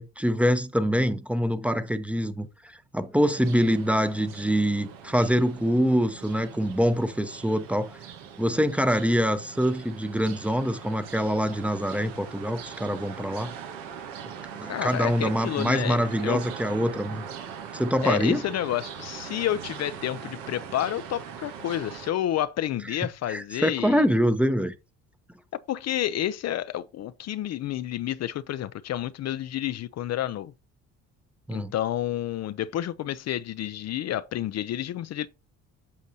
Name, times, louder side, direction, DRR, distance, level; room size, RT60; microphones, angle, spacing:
voice 1, 0.0-2.5 2.9-8.0 8.4-13.5 14.6-17.2 17.7-18.4 23.3-24.7 31.5-31.7, equal, 5° right, 0.8 m, -25 dB
sound 1, 3.3-22.1, right 7 dB, 85° right, 1.4 m, -41 dB
voice 2, 14.7-16.4 18.0-24.1 25.5-30.5 31.5-35.3, left 12 dB, 50° left, 0.5 m, -30 dB
8.3 x 6.4 x 2.7 m
supercardioid pair, 80°, 33 cm